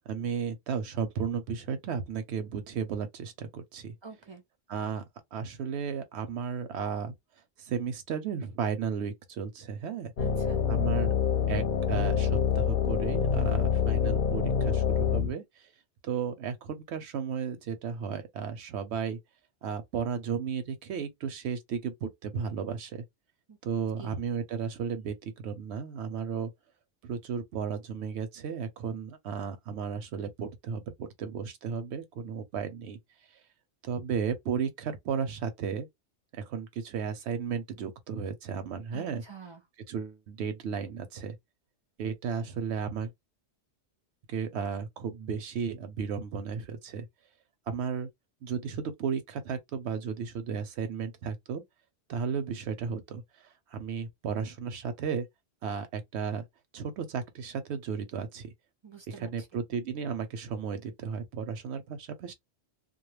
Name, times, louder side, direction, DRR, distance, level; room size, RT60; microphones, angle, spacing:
voice 1, 0.1-3.9 4.7-5.0 5.3-7.1 7.6-10.1 10.7-11.1 11.5-15.7 16.0-19.2 19.6-23.0 23.6-26.5 27.0-33.0 33.8-35.9 36.3-39.2 39.9-41.4 42.0-43.1 44.3-47.1 47.7-48.1 48.4-51.6 52.1-55.3 55.6-56.4 56.7-58.5 59.1-62.3, right 6 dB, 80° right, 0.9 m, -34 dB
voice 2, 4.0-4.4 10.2-10.6 23.5-23.6 24.0-24.2 38.9-39.6 58.8-59.3, right 5 dB, 45° right, 0.3 m, -47 dB
sound 1, 10.2-15.3, left 7 dB, 55° left, 0.7 m, -26 dB
2.2 x 2.1 x 3.1 m
omnidirectional pair, 1.1 m